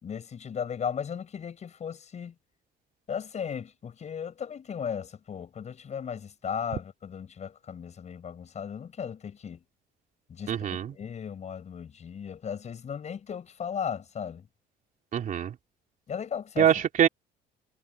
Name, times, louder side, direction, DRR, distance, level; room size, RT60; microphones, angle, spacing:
voice 1, 0.0-2.3 3.1-9.6 10.3-14.5 16.1-16.8, left 7 dB, 45° left, 6.1 m, -36 dB
voice 2, 10.5-10.9 15.1-15.5 16.6-17.1, right 9 dB, 50° right, 2.9 m, -24 dB
cardioid pair, 110°, 17 cm